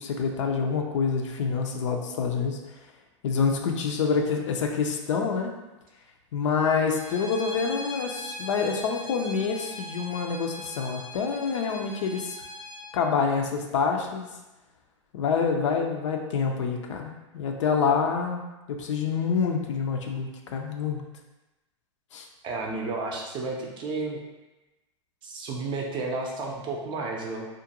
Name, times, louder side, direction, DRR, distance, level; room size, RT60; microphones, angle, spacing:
voice 1, 0.0-2.6 3.2-5.5 6.3-12.4 12.9-14.3 15.1-21.0 22.1-22.3, left 5 dB, 75° left, 3 dB, 0.4 m, -27 dB
Bowed string instrument, 6.9-12.8, left 1 dB, 25° left, 0.6 m, -40 dB
voice 2, 22.4-24.2 25.2-27.5, right 3 dB, 30° right, 0 dB, 0.5 m, -32 dB
2.5 x 2.2 x 2.8 m, 1.0 s
hypercardioid pair, 120°, 16 cm